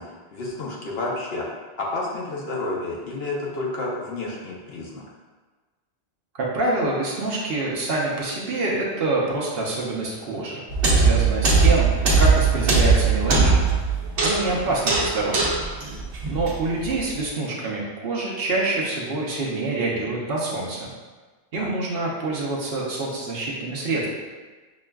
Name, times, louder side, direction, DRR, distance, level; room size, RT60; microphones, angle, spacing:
voice 1, 0.0-1.5 1.8-5.0 14.4-14.7 21.6-21.7, left 2 dB, 65° left, -4 dB, 0.9 m, -30 dB
voice 2, 6.3-10.6 10.9-13.6 14.2-15.6 16.3-20.9 21.5-24.1, right 2 dB, 65° right, -4 dB, 0.9 m, -26 dB
sound 1, 10.7-17.0, right 4 dB, 90° right, 1.0 m, -20 dB
6.0 x 2.4 x 2.2 m, 1.3 s
omnidirectional pair, 1.1 m